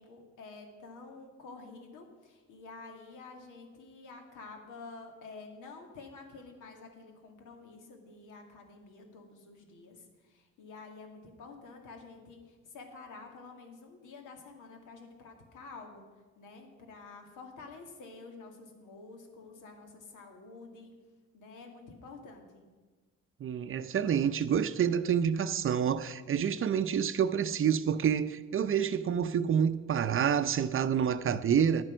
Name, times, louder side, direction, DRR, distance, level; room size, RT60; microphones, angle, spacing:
voice 1, 0.0-16.0 16.4-20.9 21.3-22.6, left 3 dB, 85° left, 2.2 m, -49 dB
voice 2, 23.4-31.8, right 8 dB, 45° right, 0.6 m, -28 dB
10.5 x 9.0 x 6.2 m
cardioid pair, 90°, 30 cm